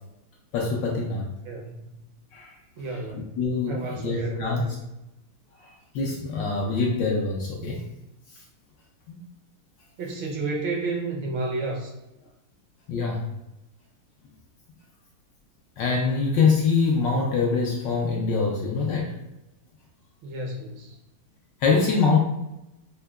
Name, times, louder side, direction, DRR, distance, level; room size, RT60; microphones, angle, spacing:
voice 1, 0.5-1.3 2.3-2.6 3.1-4.6 5.6-7.8 8.3-8.4 9.1-9.2 12.9-13.3 15.8-19.2 21.6-22.2, left 4 dB, 75° left, -1 dB, 1.1 m, -24 dB
voice 2, 1.4-1.9 2.8-3.4 3.7-4.8 10.0-11.9 20.2-21.0, right 3 dB, 70° right, 0 dB, 1.3 m, -31 dB
5.5 x 2.1 x 2.2 m, 0.90 s
omnidirectional pair, 2.3 m